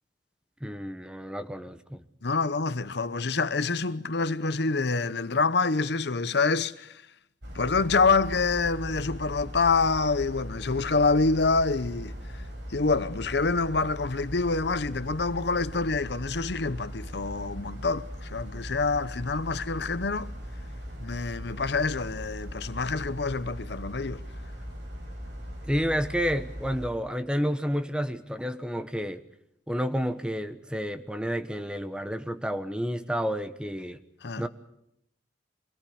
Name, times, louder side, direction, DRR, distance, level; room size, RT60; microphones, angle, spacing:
voice 1, 0.6-2.0 25.7-29.2 29.7-34.0 34.4-34.5, equal, 5° right, 1.1 m, -30 dB
voice 2, 2.2-7.0 7.5-12.4 12.7-20.3 21.0-24.2 34.2-34.5, left 4 dB, 65° left, 0.9 m, -26 dB
sound 1, 7.4-26.9, equal, 80° right, 6.0 m, -39 dB
24.5 x 17.5 x 8.6 m
head